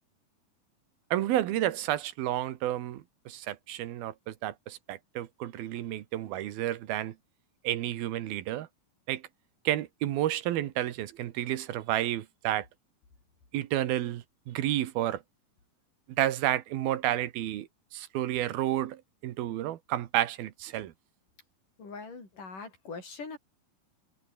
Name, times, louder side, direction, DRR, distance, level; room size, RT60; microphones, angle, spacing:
voice 1, 1.1-7.1 7.6-8.7 9.1-9.2 9.6-12.7 13.5-15.2 16.1-20.9, right 13 dB, 85° right, 3.2 m, -31 dB
voice 2, 21.8-23.4, left 4 dB, 60° left, 9.1 m, -42 dB
omnidirectional pair, 4.2 m